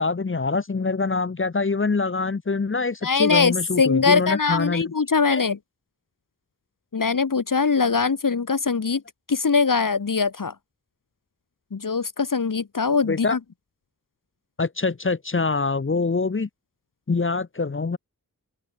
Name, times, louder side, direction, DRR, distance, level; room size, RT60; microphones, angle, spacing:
voice 1, 0.0-4.9 5.3-5.4 13.1-13.4 14.6-16.5 17.1-18.0, left 4 dB, 35° left, 0.8 m, -24 dB
voice 2, 3.0-5.6 6.9-9.0 9.3-10.5 11.7-13.4, left 5 dB, 60° left, 1.6 m, -22 dB
open air
wide cardioid pair, 50°, 37 cm